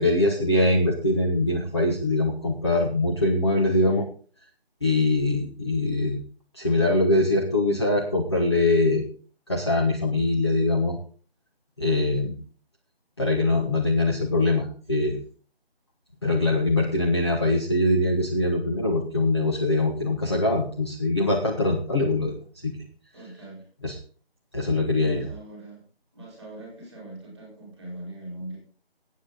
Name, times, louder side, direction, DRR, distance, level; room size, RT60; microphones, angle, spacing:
voice 1, 0.0-4.0 4.8-6.2 6.5-9.0 9.5-11.0 11.8-12.4 13.2-15.2 16.2-22.3 22.6-22.7 23.8-23.9 24.5-25.3, left 2 dB, 25° left, 1 dB, 1.1 m, -23 dB
voice 2, 3.8-4.1 23.1-23.7 24.9-25.8 26.1-28.6, right 1 dB, ahead, -3 dB, 3.8 m, -41 dB
15.5 x 8.5 x 3.9 m, 0.42 s
figure-of-eight pair, 175°, 31 cm